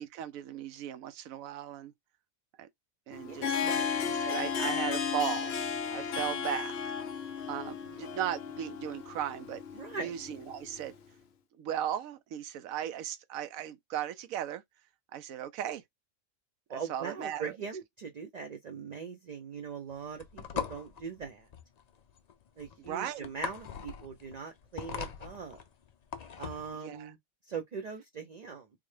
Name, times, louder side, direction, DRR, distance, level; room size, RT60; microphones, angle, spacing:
voice 1, 0.0-1.9 2.6-2.7 3.1-5.5 5.9-6.8 7.5-9.6 10.0-10.9 11.6-14.6 15.1-15.8 16.9-17.5 22.9-23.3 26.8-27.1, right 10 dB, 80° right, 1.0 m, -37 dB
Harp, 3.1-10.9, left 6 dB, 60° left, 0.7 m, -34 dB
voice 2, 3.2-3.9 9.7-10.1 16.7-21.5 22.6-25.6 26.4-27.2 27.4-28.7, right 6 dB, 55° right, 0.4 m, -41 dB
sound 1, 19.9-26.7, left 7 dB, 90° left, 0.3 m, -41 dB
3.7 x 2.1 x 3.2 m
omnidirectional pair, 1.4 m